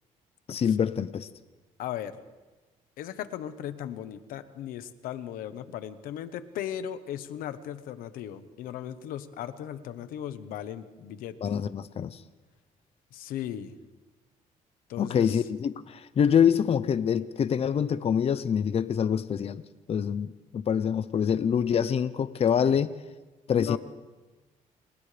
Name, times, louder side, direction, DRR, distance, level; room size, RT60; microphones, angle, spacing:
voice 1, 0.5-1.3 11.4-12.2 15.0-19.6 19.9-22.9 23.5-23.8, left 8 dB, 45° left, 14 dB, 0.7 m, -25 dB
voice 2, 1.8-2.2 3.0-11.4 13.1-13.7 14.9-15.4 22.6-22.8 23.5-23.8, left 10 dB, 90° left, 11 dB, 1.2 m, -37 dB
29.5 x 27.5 x 3.4 m, 1.2 s
cardioid pair, 100°, 14 cm